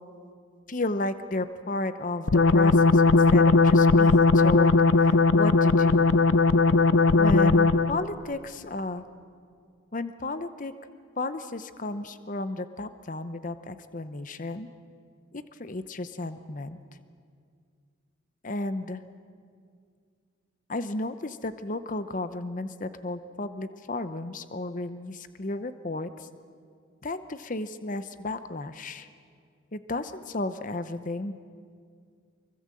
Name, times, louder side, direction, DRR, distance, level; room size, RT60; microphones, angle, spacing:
voice 1, 0.7-6.1 7.2-9.0 9.9-10.7 11.2-14.7 15.3-16.8 18.4-19.0 20.7-26.3 27.0-29.1 29.7-31.4, left 2 dB, 40° left, 11 dB, 0.8 m, -33 dB
sound 1, 2.3-8.0, left 3 dB, 80° left, 0.6 m, -19 dB
24.5 x 23.0 x 7.7 m, 2.2 s
head